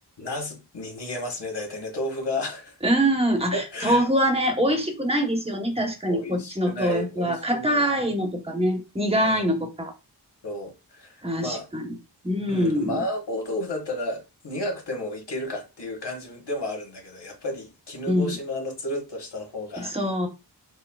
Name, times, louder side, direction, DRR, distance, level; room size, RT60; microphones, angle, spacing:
voice 1, 0.2-2.8 3.5-4.1 6.1-7.8 9.1-9.4 10.4-11.7 12.5-19.9, left 1 dB, 80° left, 1.4 m, -32 dB
voice 2, 2.8-9.9 11.2-11.9 12.2-13.0 18.1-18.3 19.8-20.3, equal, 15° right, 1.1 m, -24 dB
6.1 x 2.2 x 2.3 m
wide cardioid pair, 55°, 41 cm